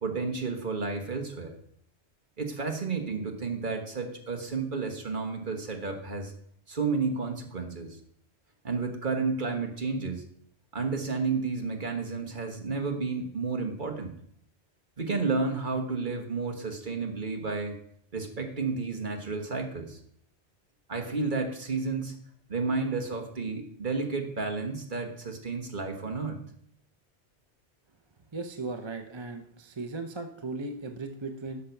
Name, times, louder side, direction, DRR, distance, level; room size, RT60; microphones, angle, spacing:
voice 1, 0.0-1.5 2.4-6.3 6.7-8.0 8.6-10.2 10.7-14.1 15.0-17.8 18.1-20.0 20.9-22.1 22.5-26.4, right 4 dB, 50° right, 4 dB, 1.6 m, -31 dB
voice 2, 28.3-31.6, right 3 dB, 30° right, 5 dB, 0.8 m, -37 dB
11.0 x 6.7 x 5.8 m, 0.66 s
omnidirectional pair, 1.1 m